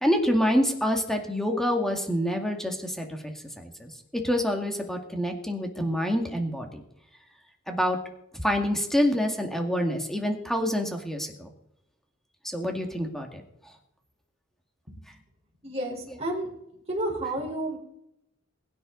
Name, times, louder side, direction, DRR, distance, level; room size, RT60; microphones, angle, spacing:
voice 1, 0.0-6.8 7.7-8.0 8.4-11.5 12.4-13.4, equal, ahead, 3 dB, 2.2 m, -27 dB
voice 2, 15.6-16.5 16.9-17.8, right 1 dB, 30° right, -2 dB, 4.5 m, -31 dB
22.0 x 10.0 x 4.1 m, 0.78 s
head